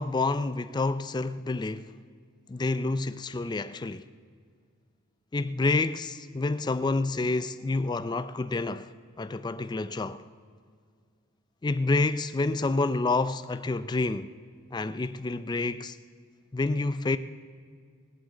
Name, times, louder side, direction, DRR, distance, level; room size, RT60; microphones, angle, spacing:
voice 1, 0.0-1.9 2.5-4.1 5.3-8.9 9.2-10.2 11.6-14.3 14.7-16.0 16.5-17.2, left 3 dB, 20° left, 0.4 m, -28 dB
19.0 x 7.7 x 8.2 m
head